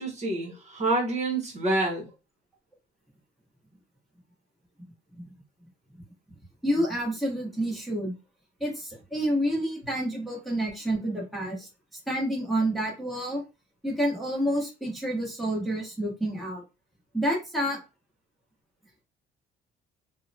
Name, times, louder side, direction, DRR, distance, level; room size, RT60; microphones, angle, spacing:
voice 1, 0.0-2.1, right 2 dB, 45° right, 1.0 m, -27 dB
voice 2, 6.6-8.1 8.6-11.7 12.1-13.4 13.8-16.6 17.1-17.8, equal, ahead, 1.1 m, -28 dB
2.7 x 2.2 x 2.7 m
cardioid pair, 110°, 17 cm